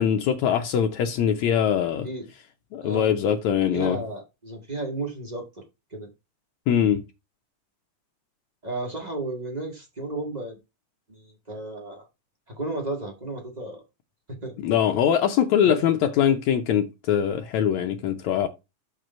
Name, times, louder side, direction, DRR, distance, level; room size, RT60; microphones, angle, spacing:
voice 1, 0.0-2.1 2.7-4.0 6.7-7.0 14.6-18.5, left 9 dB, 75° left, 2.0 m, -22 dB
voice 2, 3.7-5.6 5.9-6.1 8.6-10.5 11.1-12.1 12.5-13.8 14.3-14.5 15.6-15.8, right 2 dB, 20° right, 1.3 m, -33 dB
7.0 x 5.2 x 4.3 m
omnidirectional pair, 3.4 m